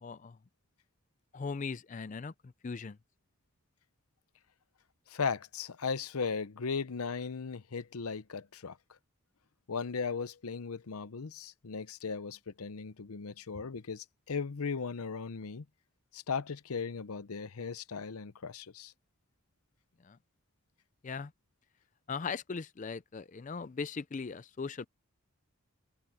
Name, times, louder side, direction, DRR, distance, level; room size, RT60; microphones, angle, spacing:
voice 1, 0.0-0.4 1.3-2.3 2.6-3.0 20.0-20.2 21.0-21.3 22.1-24.9, left 5 dB, 35° left, 0.4 m, -39 dB
voice 2, 5.1-8.8 9.7-15.6 16.1-18.9, left 5 dB, 85° left, 0.7 m, -37 dB
head